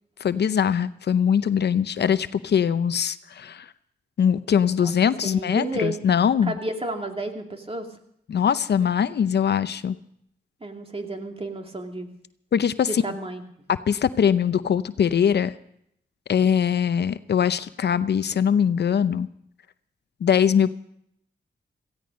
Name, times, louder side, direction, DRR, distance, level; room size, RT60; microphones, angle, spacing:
voice 1, 0.2-3.7 4.2-6.5 8.3-10.0 12.5-13.0 13.7-15.5 16.3-19.3 20.2-20.7, left 8 dB, 65° left, 14 dB, 0.6 m, -22 dB
voice 2, 4.7-6.0 6.4-7.9 10.6-12.1 12.9-13.4, right 2 dB, 30° right, 3 dB, 2.5 m, -32 dB
17.0 x 15.5 x 5.3 m, 0.73 s
cardioid pair, 60°, 18 cm